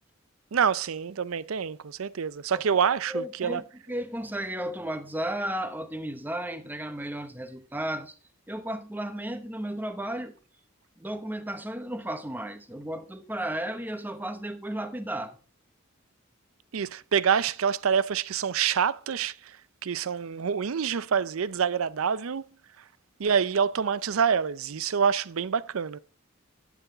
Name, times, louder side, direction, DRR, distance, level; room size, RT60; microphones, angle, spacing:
voice 1, 0.5-3.6 16.7-19.6 19.8-22.5 23.2-26.0, right 7 dB, 80° right, 0.5 m, -26 dB
voice 2, 3.1-8.2 8.5-10.3 11.0-15.4, right 1 dB, 10° right, 0.9 m, -34 dB
12.0 x 8.2 x 3.9 m
head